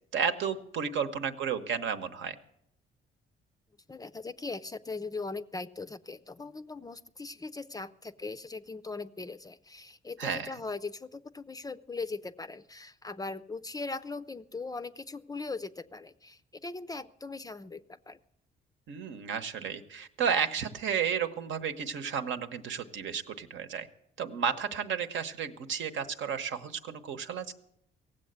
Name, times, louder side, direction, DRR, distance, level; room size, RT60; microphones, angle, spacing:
voice 1, 0.1-2.3 10.2-10.5 18.9-23.9 24.2-27.5, right 7 dB, 70° right, 8 dB, 1.0 m, -32 dB
voice 2, 3.9-18.2, left 3 dB, 20° left, 13 dB, 0.4 m, -40 dB
16.5 x 7.7 x 8.0 m, 0.76 s
cardioid pair, 90°, 20 cm